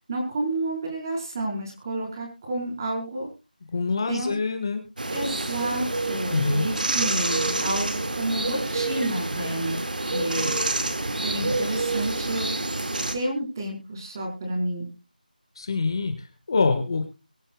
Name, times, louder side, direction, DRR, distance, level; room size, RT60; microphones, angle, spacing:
voice 1, 0.1-3.3 4.1-4.3 5.1-10.5 11.2-12.5 13.1-14.9, right 1 dB, 25° right, 0 dB, 4.3 m, -30 dB
voice 2, 3.7-4.8 6.3-6.7 15.5-17.1, left 4 dB, 30° left, 7 dB, 1.5 m, -25 dB
sound 1, 5.0-13.1, right 2 dB, 65° right, 2.1 m, -28 dB
23.0 x 8.9 x 2.3 m, 0.28 s
figure-of-eight pair, 170°, 5 cm